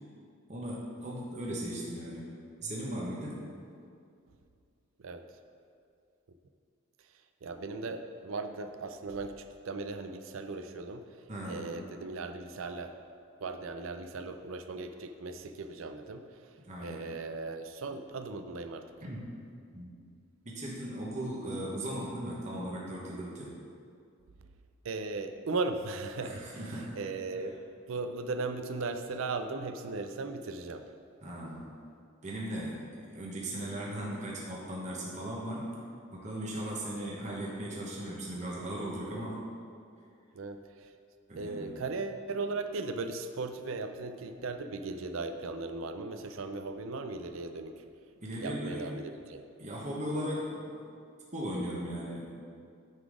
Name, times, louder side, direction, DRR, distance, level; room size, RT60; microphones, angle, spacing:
voice 1, 0.5-2.3 2.6-3.4 11.3-11.7 16.6-17.0 19.0-19.3 19.7-19.9 20.4-23.5 26.2-27.0 31.2-31.7 32.2-35.7 36.1-39.4 41.3-41.8 48.2-49.0 49.6-50.8 51.3-52.3, right 1 dB, 35° right, -4 dB, 1.0 m, -37 dB
voice 2, 7.4-11.1 11.5-13.0 13.4-16.4 16.8-18.9 24.8-27.6 27.9-30.9 40.3-40.9 41.4-47.8 48.4-49.4, right 3 dB, 70° right, 8 dB, 0.5 m, -37 dB
9.5 x 3.9 x 4.9 m, 2.4 s
head